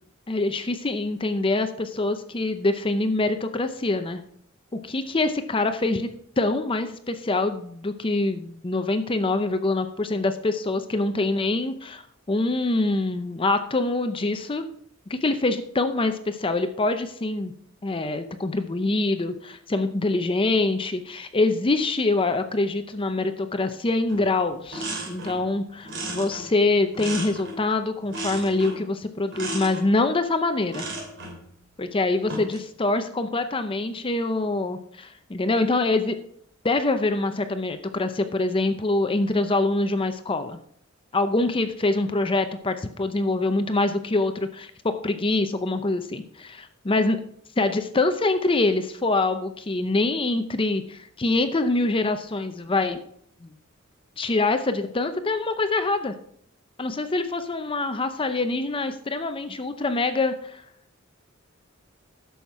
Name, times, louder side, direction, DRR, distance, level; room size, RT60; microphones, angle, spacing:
voice 1, 0.3-4.2 4.7-6.1 6.4-12.0 12.3-14.7 15.1-17.5 17.8-30.8 31.8-36.2 36.6-40.6 41.1-47.2 47.6-53.0 53.4-53.5 54.2-56.1 56.8-60.6, left 2 dB, 25° left, 9 dB, 0.6 m, -25 dB
sound 1, 24.1-24.3 24.5-25.5 25.8-27.7 28.1-28.9 29.3-29.8 30.7-31.4 32.1-32.6, right 2 dB, 60° right, 3.3 m, -34 dB
11.5 x 7.1 x 4.7 m, 0.68 s
head